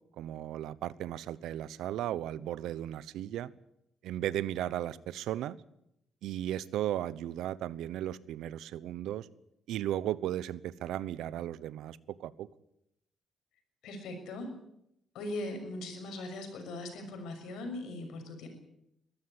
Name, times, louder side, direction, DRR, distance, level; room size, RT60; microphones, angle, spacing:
voice 1, 0.2-3.5 4.0-5.6 6.2-9.3 9.7-12.5, right 12 dB, 85° right, 19 dB, 0.9 m, -35 dB
voice 2, 13.8-14.5 15.1-18.5, left 2 dB, 85° left, 6 dB, 6.4 m, -40 dB
22.0 x 14.0 x 9.9 m, 0.80 s
cardioid pair, 90°, 0 cm